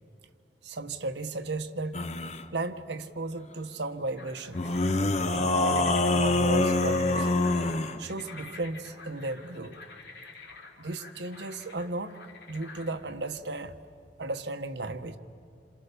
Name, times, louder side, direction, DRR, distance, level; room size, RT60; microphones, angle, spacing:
voice 1, 0.6-2.0 2.5-4.6 5.3-7.4 8.0-9.8 10.8-12.2 12.5-13.7 14.2-15.2, right 2 dB, 70° right, 8 dB, 1.2 m, -35 dB
sound 1, 1.9-2.4 4.5-8.0, left 2 dB, 40° left, 1.0 m, -25 dB
sound 2, 4.2-12.9, left 4 dB, 65° left, 3.2 m, -49 dB
28.0 x 27.5 x 6.9 m, 2.4 s
head